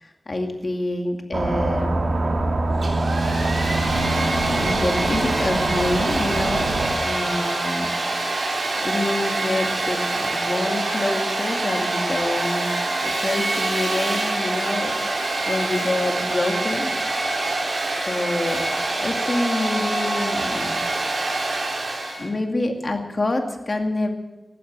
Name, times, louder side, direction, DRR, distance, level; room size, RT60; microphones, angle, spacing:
voice 1, 0.0-2.0 4.0-6.7 7.0-7.9 8.8-12.7 13.0-16.9 18.1-18.6 19.0-20.8 22.2-24.1, left 2 dB, 50° left, 4 dB, 2.3 m, -27 dB
sound 1, 1.3-6.9, right 2 dB, 85° right, 2.6 m, -24 dB
Domestic sounds home sounds, 2.7-22.3, right 2 dB, 70° right, 3.6 m, -25 dB
15.0 x 12.0 x 7.5 m, 1.1 s
wide cardioid pair, 70°, 0 cm